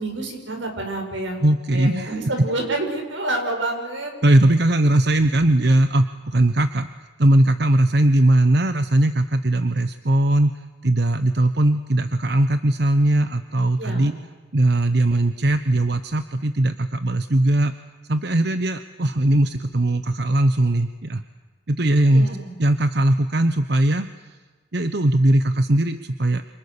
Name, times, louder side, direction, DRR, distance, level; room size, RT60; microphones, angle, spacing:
voice 1, 0.0-1.4 1.7-4.1 13.8-14.2 22.1-22.5, right 2 dB, 85° right, 3 dB, 7.5 m, -28 dB
voice 2, 1.4-2.2 4.2-6.9 7.2-10.5 10.8-14.1 14.5-17.7 18.1-21.2 21.7-22.3 22.6-24.1 24.7-26.4, right 1 dB, 60° right, 10 dB, 1.0 m, -19 dB
29.5 x 28.0 x 6.9 m, 1.3 s
head